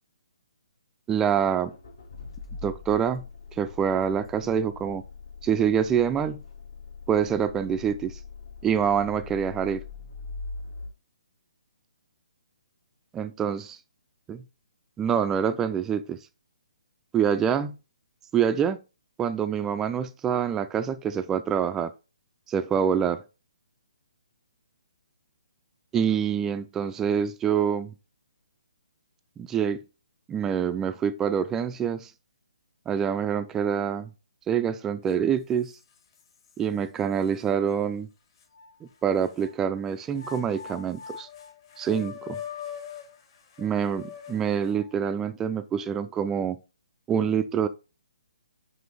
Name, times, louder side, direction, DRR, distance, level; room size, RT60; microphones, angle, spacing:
voice 1, 1.1-1.7 2.6-3.2 3.6-5.0 5.4-6.4 7.1-8.2 8.6-9.8 13.1-13.6 14.3-14.4 15.0-16.2 17.1-17.8 18.3-18.8 19.2-21.9 22.5-23.2 25.9-27.9 29.4-29.8 30.3-32.1 32.9-34.1 34.5-35.7 36.6-38.1 38.8-41.3 41.8-42.4 43.6-46.6 47.1-47.7, right 8 dB, 15° right, 0.4 m, -26 dB
Accelerating revving vroom, 1.3-10.9, left 4 dB, 70° left, 2.6 m, -42 dB
sound 1, 35.1-35.2 35.6-36.6 37.2-37.3 38.4-39.5 40.1-45.0, left 8 dB, 45° left, 1.6 m, -42 dB
6.0 x 5.0 x 3.6 m
figure-of-eight pair, 140°, 3 cm